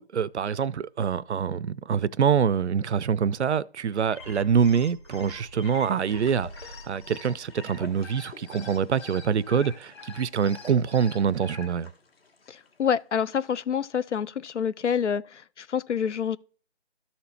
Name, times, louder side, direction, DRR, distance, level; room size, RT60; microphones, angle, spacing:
voice 1, 0.0-11.9, right 7 dB, 70° right, 0.5 m, -25 dB
sound 1, 3.9-11.7, left 5 dB, 25° left, 1.2 m, -46 dB
sound 2, 4.1-8.7 9.0-9.1, right 1 dB, 15° right, 0.5 m, -47 dB
sound 3, 5.6-13.8 14.1-14.2, left 5 dB, 55° left, 2.0 m, -53 dB
voice 2, 12.5-16.4, left 7 dB, 80° left, 0.6 m, -27 dB
13.0 x 4.4 x 4.2 m
figure-of-eight pair, 160°, 35 cm